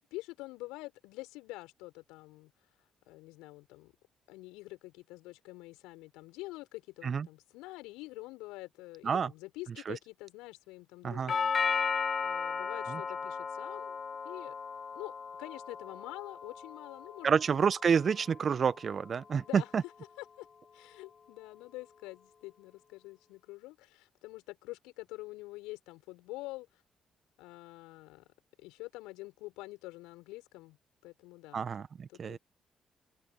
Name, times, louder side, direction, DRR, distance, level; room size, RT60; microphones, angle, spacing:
voice 1, 0.1-2.5 3.1-3.9 4.3-11.5 12.2-14.0 14.2-14.5 14.9-15.1 15.4-17.4 19.4-19.7 20.2-20.5 20.7-26.7 27.4-28.2 28.6-30.8 31.0-31.7 32.1-32.4, left 20 dB, 75° left, 5.4 m, -46 dB
Doorbell, 11.3-19.3, left 6 dB, 45° left, 1.6 m, -36 dB
voice 2, 17.2-19.8 31.5-32.4, right 6 dB, 50° right, 1.3 m, -29 dB
hypercardioid pair, 45°, 0 cm